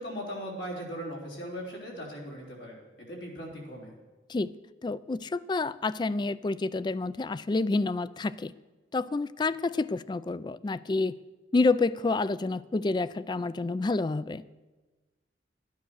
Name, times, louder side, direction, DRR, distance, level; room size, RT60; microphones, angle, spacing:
voice 1, 0.0-3.9, equal, 80° left, -2 dB, 3.7 m, -39 dB
voice 2, 4.8-8.5 8.9-11.1 11.5-14.4, left 3 dB, 25° left, 17 dB, 0.3 m, -28 dB
13.0 x 9.5 x 6.4 m, 1.2 s
head